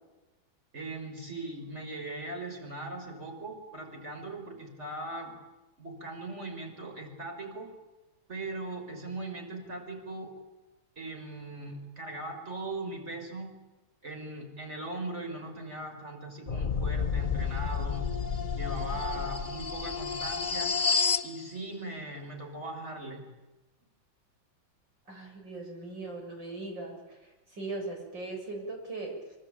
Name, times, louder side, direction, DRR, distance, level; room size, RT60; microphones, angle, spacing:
voice 1, 0.7-5.4 5.8-7.7 8.3-10.3 11.0-13.5 14.0-18.1 18.5-20.8 21.2-23.2, right 2 dB, 35° right, 3 dB, 6.1 m, -39 dB
sound 1, 16.5-21.3, left 6 dB, 35° left, 0.8 m, -30 dB
voice 2, 18.9-19.3 25.1-27.2 27.5-29.1, right 2 dB, 65° right, 2 dB, 7.7 m, -39 dB
25.5 x 24.5 x 9.0 m, 1.1 s
omnidirectional pair, 2.2 m